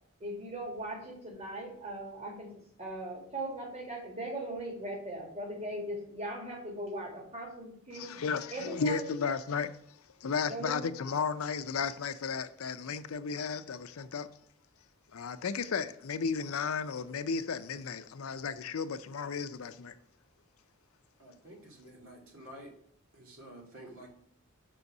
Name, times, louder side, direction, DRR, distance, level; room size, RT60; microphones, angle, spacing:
voice 1, 0.2-8.2 8.5-9.1 10.5-10.8, right 1 dB, 30° right, 1.7 m, -39 dB
voice 2, 7.9-14.3 15.1-19.9 21.8-21.9, left 5 dB, 85° left, 0.5 m, -34 dB
voice 3, 21.2-22.7 23.1-24.1, right 1 dB, 80° right, 2.2 m, -50 dB
6.2 x 4.0 x 5.9 m
head